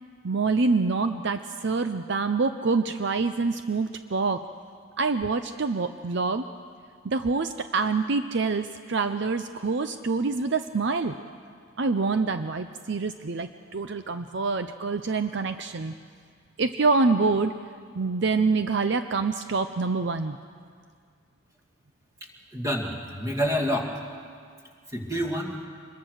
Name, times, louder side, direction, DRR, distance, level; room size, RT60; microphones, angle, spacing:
voice 1, 0.2-4.4 5.0-6.5 7.0-11.1 11.8-15.9 16.6-17.5 17.9-20.4, right 4 dB, 55° right, 9 dB, 0.6 m, -26 dB
voice 2, 22.5-23.9 24.9-25.6, equal, 15° right, 1 dB, 2.2 m, -28 dB
25.0 x 22.0 x 6.4 m, 2.1 s
head